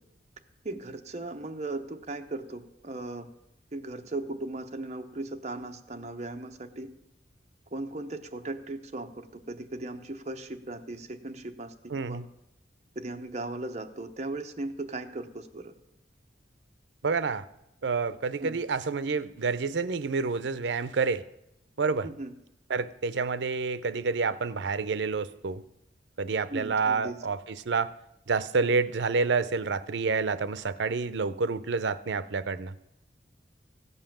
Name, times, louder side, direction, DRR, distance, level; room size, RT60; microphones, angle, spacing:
voice 1, 0.6-3.3 3.7-6.9 7.7-11.7 12.0-12.2 13.0-15.7 18.4-18.6 22.0-22.3 26.5-27.2, right 2 dB, 40° right, 6 dB, 0.8 m, -37 dB
voice 2, 11.9-12.2 17.0-17.4 17.8-21.2 21.8-22.1 22.7-25.6 26.2-27.4 27.7-27.9 28.3-32.7, right 4 dB, 80° right, 14 dB, 0.6 m, -28 dB
16.0 x 5.6 x 7.2 m, 0.84 s
head